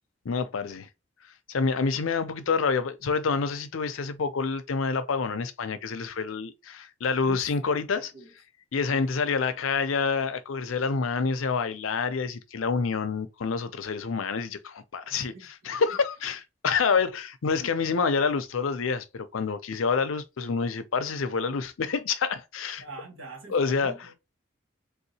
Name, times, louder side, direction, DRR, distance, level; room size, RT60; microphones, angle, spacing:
voice 1, 0.2-0.9 1.5-8.1 8.7-22.8 23.5-23.9, left 5 dB, 85° left, 0.5 m, -27 dB
voice 2, 8.0-8.3 8.9-9.1 15.1-15.7 22.8-24.2, right 3 dB, 80° right, 1.5 m, -45 dB
3.5 x 2.7 x 2.7 m
head